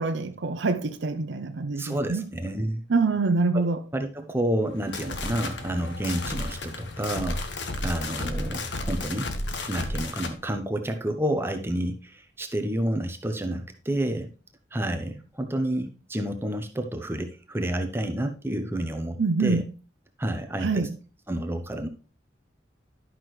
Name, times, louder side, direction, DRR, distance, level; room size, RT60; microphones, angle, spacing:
voice 1, 0.0-2.2 2.9-3.8 19.2-19.7 20.6-20.9, right 3 dB, 75° right, 0.6 m, -25 dB
voice 2, 1.8-2.8 3.5-3.6 3.9-7.4 7.8-9.3 9.7-14.3 14.7-19.6 20.2-20.9 21.3-21.9, right 1 dB, 10° right, 0.7 m, -29 dB
sound 1, 4.7-10.4, left 2 dB, 75° left, 1.0 m, -33 dB
11.0 x 6.0 x 3.2 m
head